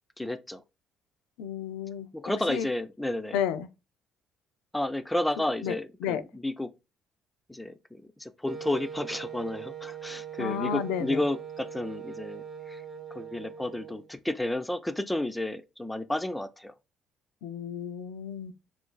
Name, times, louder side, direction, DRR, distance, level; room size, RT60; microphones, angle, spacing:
voice 1, 0.2-0.6 2.1-3.4 4.7-6.7 7.5-12.8 13.1-16.7, left 1 dB, 10° left, 0.3 m, -32 dB
voice 2, 1.4-2.1 2.5-2.7 3.3-3.7 5.6-5.8 6.0-6.2 10.4-11.2 17.4-18.5, left 8 dB, 90° left, 0.3 m, -32 dB
Wind instrument woodwind instrument, 8.5-14.1, right 7 dB, 30° right, 0.7 m, -41 dB
2.5 x 2.4 x 3.7 m
supercardioid pair, 75°, 0 cm